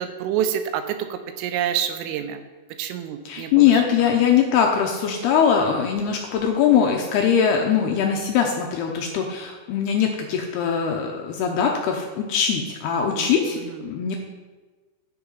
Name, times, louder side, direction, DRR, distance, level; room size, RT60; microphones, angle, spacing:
voice 1, 0.0-2.4 2.8-3.8 13.2-13.8, right 9 dB, 85° right, 8 dB, 3.3 m, -28 dB
voice 2, 3.3-14.2, left 7 dB, 85° left, 1 dB, 2.3 m, -21 dB
10.5 x 8.7 x 5.5 m, 1.3 s
omnidirectional pair, 5.7 m